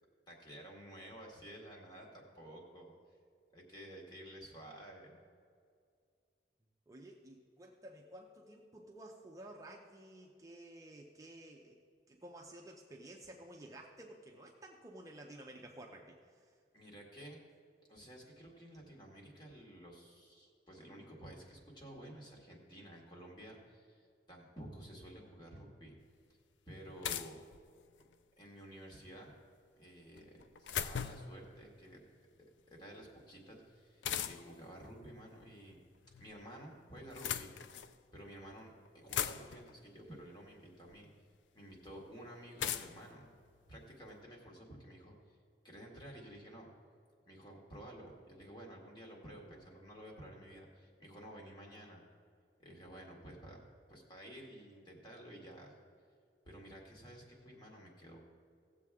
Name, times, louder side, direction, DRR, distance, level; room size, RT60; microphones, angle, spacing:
voice 1, 0.3-2.9 3.5-5.2 16.7-17.4 17.9-26.0 26.7-27.4 28.4-29.3 29.8-32.0 32.7-35.8 36.2-37.5 38.1-41.1 41.5-43.3 43.7-45.4 45.6-46.7 47.3-52.0 52.6-53.6 53.9-55.8 56.4-58.2, equal, 25° left, -1 dB, 2.0 m, -52 dB
voice 2, 6.9-11.8 12.1-16.5, right 1 dB, 20° right, -1 dB, 0.7 m, -53 dB
sound 1, 26.0-26.1 27.0-28.1 30.2-31.4 34.0-34.6 35.8-36.4 37.0-38.0 38.6-38.7 38.9-39.8 40.9-41.0 42.6-44.1, left 9 dB, 90° left, 0.4 m, -40 dB
17.0 x 7.6 x 3.6 m, 2.2 s
head